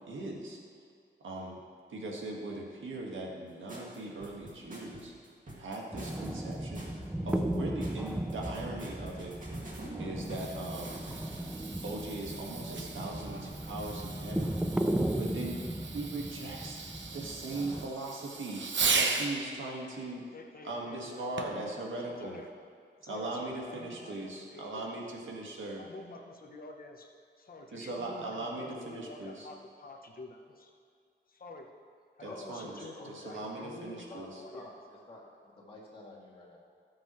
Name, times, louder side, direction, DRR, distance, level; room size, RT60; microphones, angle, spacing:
voice 1, 0.1-0.6 1.2-1.6 1.9-5.1 5.6-6.9 7.2-9.4 10.0-11.1 11.8-14.6 15.2-15.6 15.9-16.8 17.1-18.6 19.0-20.2 20.6-22.4 23.0-25.8 27.7-29.5 32.2-34.4, right 2 dB, 90° right, -2 dB, 1.8 m, -39 dB
sound 1, 3.7-11.5, right 1 dB, 45° right, 2.2 m, -47 dB
sound 2, 5.9-17.9, right 1 dB, 5° right, 0.4 m, -36 dB
Fireworks, 10.1-19.4 21.4-21.7 22.4-22.5, right 4 dB, 75° right, 1.0 m, -37 dB
voice 2, 20.3-21.7 22.0-22.5 23.0-25.0 25.8-30.7 31.3-31.7 32.2-34.7, left 2 dB, 50° left, 3 dB, 0.9 m, -48 dB
voice 3, 32.2-36.6, left 1 dB, 30° left, -5 dB, 2.6 m, -50 dB
17.5 x 7.6 x 3.2 m, 2.3 s
wide cardioid pair, 130°, 19 cm